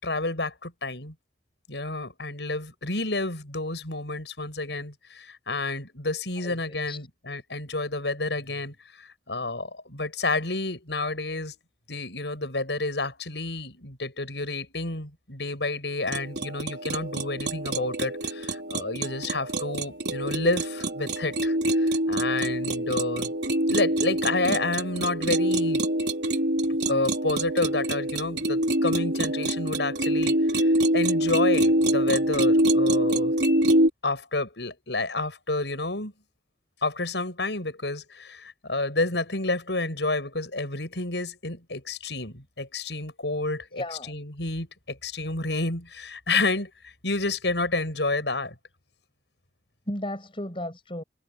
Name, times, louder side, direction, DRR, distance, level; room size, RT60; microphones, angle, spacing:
voice 1, 0.0-1.1 1.7-11.6 11.9-23.3 23.7-25.8 26.7-30.4 30.9-33.3 34.0-36.1 36.8-46.7 47.0-48.5, left 2 dB, 85° left, 6.4 m, -30 dB
voice 2, 6.4-7.0 43.8-44.1 49.9-51.0, left 1 dB, 30° left, 7.1 m, -34 dB
sound 1, 16.1-33.9, right 1 dB, 80° right, 4.0 m, -25 dB
head